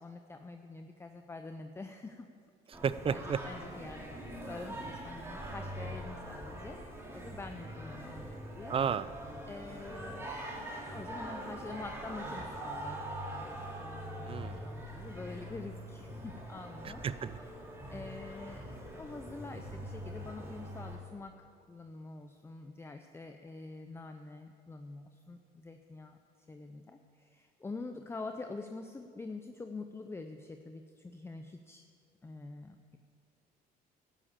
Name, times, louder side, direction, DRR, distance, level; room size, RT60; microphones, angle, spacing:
voice 1, 0.0-2.3 3.0-6.8 7.1-8.7 9.5-10.4 10.8-17.0 17.9-26.2 26.5-31.8 32.2-33.0, left 3 dB, 15° left, 6 dB, 0.6 m, -46 dB
Singing, 2.7-21.0, right 1 dB, 15° right, 2.9 m, -43 dB
voice 2, 2.7-3.4 8.7-9.1 14.3-14.6 16.8-17.4, right 7 dB, 35° right, 16 dB, 0.5 m, -33 dB
12.0 x 9.9 x 7.4 m, 2.2 s
cardioid pair, 110°, 17 cm